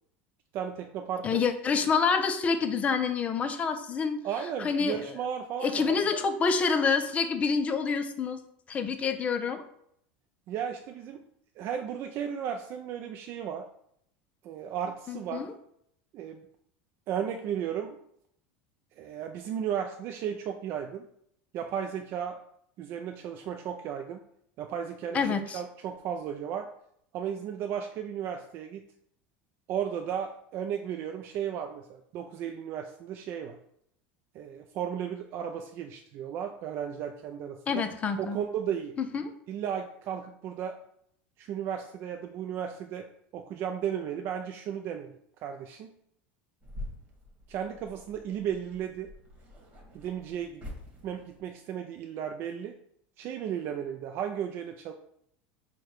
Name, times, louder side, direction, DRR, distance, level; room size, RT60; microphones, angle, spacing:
voice 1, 0.5-1.4 4.2-6.2 10.5-11.2 11.6-13.7 14.4-15.5 16.1-16.4 17.1-18.0 19.0-21.1 21.5-22.4 22.8-24.2 24.6-25.2 25.5-26.7 27.1-28.8 29.7-33.6 34.3-37.8 38.2-38.9 39.5-40.8 41.4-43.1 43.3-45.1 45.4-45.9 47.5-49.1 49.9-50.6 51.0-52.7 53.2-54.9, right 8 dB, 45° right, 4 dB, 0.3 m, -34 dB
voice 2, 1.2-4.2 4.6-5.1 5.6-8.4 8.7-9.6 15.1-15.5 25.1-25.6 37.7-38.4 39.0-39.3, left 5 dB, 25° left, 8 dB, 0.4 m, -27 dB
sound 1, 46.6-51.5, left 1 dB, 30° right, 1.4 m, -46 dB
4.7 x 2.2 x 4.4 m, 0.71 s
supercardioid pair, 125°, 5 cm